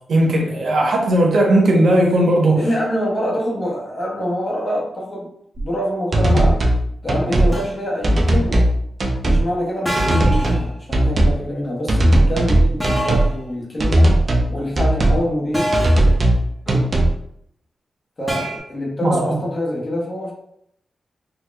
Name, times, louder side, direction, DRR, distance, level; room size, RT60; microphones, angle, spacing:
voice 1, 0.1-2.6 19.0-19.4, right 1 dB, 70° right, -1 dB, 1.0 m, -16 dB
voice 2, 2.5-6.6 7.0-8.7 9.2-14.1 14.5-15.7 16.7-16.9 18.2-20.4, equal, 35° left, -2 dB, 1.0 m, -25 dB
sound 1, 5.6-5.7 6.1-6.8 7.1-7.5 8.0-8.7 9.0-9.4 10.0-10.6 10.9-11.4 11.9-13.3 13.8-14.5 14.8-15.2 15.7-16.4 16.7-17.1, right 1 dB, 50° right, 0.6 m, -16 dB
sound 2, 7.5-7.8 9.9-10.6 12.8-13.3 15.5-16.2 18.3-18.6, equal, ahead, 0.9 m, -24 dB
4.0 x 2.9 x 2.3 m, 0.71 s
cardioid pair, 80°, 0 cm